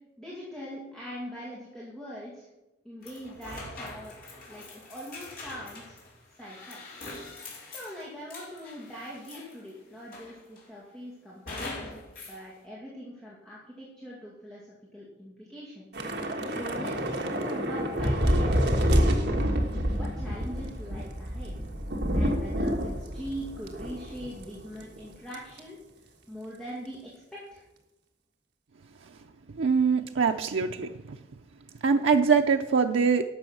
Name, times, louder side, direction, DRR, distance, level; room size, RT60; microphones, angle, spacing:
voice 1, 0.2-2.5 2.8-4.2 4.5-5.9 6.4-6.8 7.7-12.0 12.3-15.9 16.5-19.4 19.9-21.5 22.1-25.8 26.3-27.6, equal, 5° left, -7 dB, 2.2 m, -42 dB
sound 1, 3.0-9.7 10.1-10.7 11.5-12.4, left 2 dB, 50° left, 3.8 m, -43 dB
Thunder / Rain, 15.9-24.5 24.8-25.0 25.3-25.6, equal, 60° right, 1.5 m, -28 dB
voice 2, 29.6-30.9 31.8-33.2, right 5 dB, 90° right, 4 dB, 0.5 m, -23 dB
12.0 x 7.0 x 6.0 m, 1.0 s
head